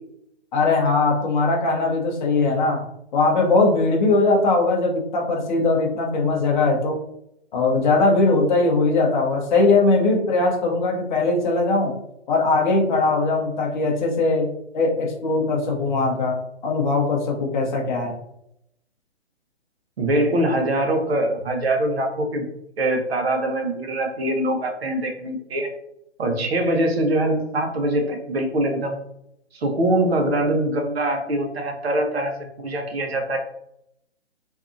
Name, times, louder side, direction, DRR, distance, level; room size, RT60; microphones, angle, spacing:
voice 1, 0.5-2.8 3.1-7.0 7.5-12.0 12.3-14.5 14.7-18.1, left 3 dB, 40° left, -1 dB, 0.7 m, -20 dB
voice 2, 20.0-22.5 22.8-25.7 26.2-29.0 29.5-33.4, right 1 dB, 60° right, 3 dB, 0.8 m, -23 dB
2.6 x 2.3 x 2.5 m, 0.77 s
hypercardioid pair, 145°, 35 cm